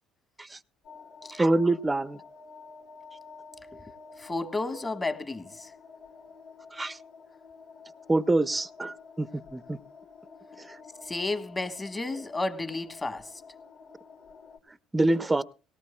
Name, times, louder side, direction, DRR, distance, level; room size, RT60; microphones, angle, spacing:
sound 1, 0.8-14.6, left 5 dB, 70° left, 3.9 m, -50 dB
voice 1, 1.3-2.2 6.7-7.0 8.1-9.8 10.6-10.8 14.7-15.4, right 2 dB, 15° right, 0.5 m, -26 dB
voice 2, 4.2-5.7 11.0-13.4, left 2 dB, 20° left, 1.4 m, -32 dB
18.5 x 18.0 x 2.2 m
supercardioid pair, 80°, 0 cm